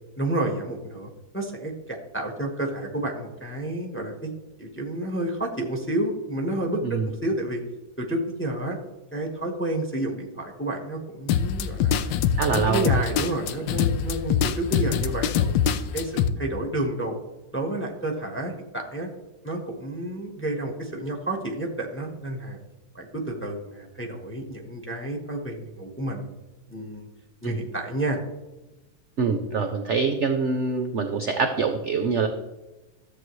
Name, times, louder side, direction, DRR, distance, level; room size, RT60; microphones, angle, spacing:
voice 1, 0.2-4.3 4.6-7.6 8.0-8.8 9.1-12.1 12.5-17.1 17.5-19.1 19.4-22.6 22.9-26.3 26.7-27.1 27.4-28.2, right 1 dB, 10° left, 2 dB, 0.9 m, -30 dB
sound 1, 11.3-16.3, left 8 dB, 90° left, 1.3 m, -24 dB
voice 2, 12.4-12.9 27.4-27.5 29.2-32.3, right 5 dB, 60° right, 6 dB, 0.7 m, -24 dB
13.0 x 7.7 x 3.1 m, 1.1 s
omnidirectional pair, 2.0 m